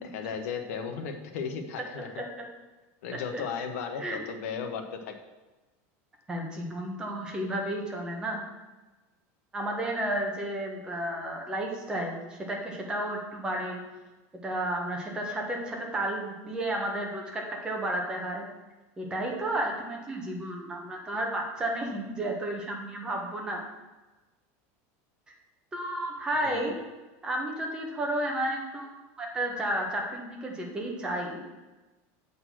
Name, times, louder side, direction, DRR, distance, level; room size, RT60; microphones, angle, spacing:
voice 1, 0.0-2.1 3.0-5.2 26.4-26.7, left 6 dB, 80° left, 5 dB, 1.1 m, -35 dB
voice 2, 1.9-2.4 3.3-3.4 4.0-4.2 6.3-8.4 9.5-13.8 14.4-18.4 19.0-23.6 25.7-26.8 27.2-28.9 29.2-31.4, right 1 dB, 10° right, -1 dB, 1.2 m, -32 dB
7.7 x 4.1 x 6.2 m, 1.2 s
supercardioid pair, 170°, 8 cm